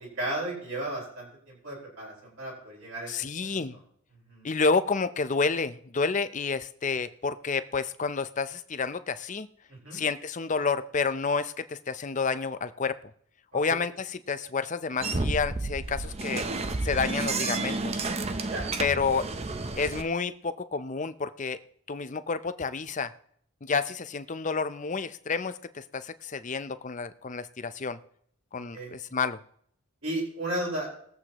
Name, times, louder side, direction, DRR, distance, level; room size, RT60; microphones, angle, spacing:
voice 1, 0.0-3.1 3.4-3.8 4.3-4.5 9.7-10.0 13.6-13.8 18.5-18.7 28.7-28.9 30.0-30.9, right 1 dB, 65° right, -4 dB, 4.8 m, -34 dB
voice 2, 3.1-3.8 4.4-9.5 9.9-13.0 13.5-16.4 16.8-18.1 18.8-19.3 19.8-21.6 21.9-23.1 23.6-28.0 28.5-29.4, left 4 dB, 35° left, 12 dB, 0.5 m, -29 dB
sound 1, 15.0-20.0, right 3 dB, 30° right, 0.6 m, -31 dB
21.0 x 8.0 x 3.0 m, 0.65 s
head